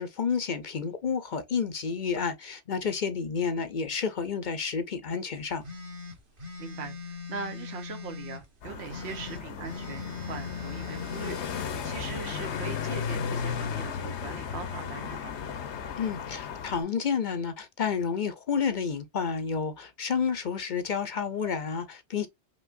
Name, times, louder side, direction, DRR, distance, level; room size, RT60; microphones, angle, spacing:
voice 1, 0.0-5.6 16.0-22.3, left 6 dB, 50° left, 0.7 m, -30 dB
sound 1, 5.6-8.4 8.9-11.7, left 5 dB, 50° right, 1.6 m, -40 dB
voice 2, 6.6-15.5, right 5 dB, 70° right, 1.2 m, -41 dB
sound 2, 8.6-16.8, left 7 dB, 75° left, 1.0 m, -35 dB
5.3 x 2.9 x 2.5 m
omnidirectional pair, 1.2 m